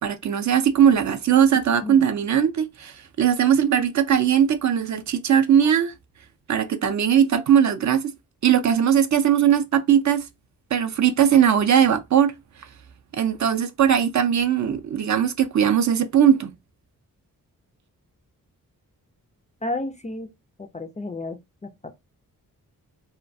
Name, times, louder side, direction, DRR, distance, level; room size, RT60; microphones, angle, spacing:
voice 1, 0.0-5.9 6.5-8.0 8.4-10.2 10.7-12.3 13.1-16.5, right 9 dB, 50° right, 0.4 m, -19 dB
voice 2, 19.6-20.3 20.6-21.9, left 2 dB, 20° left, 0.4 m, -32 dB
2.2 x 2.1 x 2.5 m
cardioid pair, 55°, 37 cm